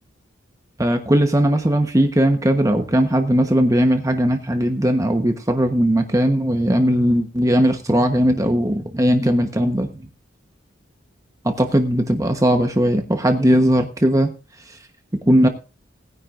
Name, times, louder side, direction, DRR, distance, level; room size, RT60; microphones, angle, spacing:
voice 1, 0.8-9.9 11.4-14.3 14.7-14.8 15.3-15.5, equal, 15° right, 5 dB, 1.1 m, -18 dB
19.5 x 10.0 x 2.6 m, 0.33 s
head